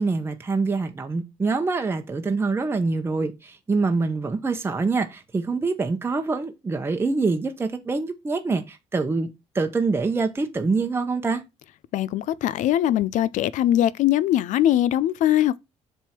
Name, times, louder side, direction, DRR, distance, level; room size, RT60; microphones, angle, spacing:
voice 1, 0.0-9.3 9.5-11.4, right 4 dB, 20° right, 0.9 m, -25 dB
voice 2, 11.9-15.6, left 12 dB, 80° left, 0.5 m, -21 dB
7.4 x 3.6 x 5.9 m
cardioid pair, 145°, 13 cm